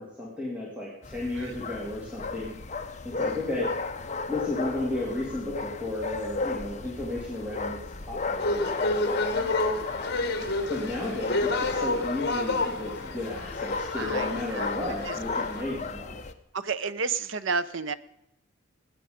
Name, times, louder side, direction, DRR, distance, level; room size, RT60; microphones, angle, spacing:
voice 1, 0.0-2.8 3.0-3.7 4.3-8.4 10.7-16.2, left 2 dB, 5° right, -5 dB, 2.7 m, -33 dB
sound 1, 1.0-16.3, left 3 dB, 35° left, 0.8 m, -34 dB
voice 2, 3.2-3.6 9.0-9.5 14.0-15.2 16.5-17.9, right 4 dB, 70° right, 14 dB, 0.7 m, -33 dB
sound 2, 8.4-15.6, left 2 dB, 55° left, 1.6 m, -30 dB
19.5 x 9.2 x 5.1 m, 0.84 s
head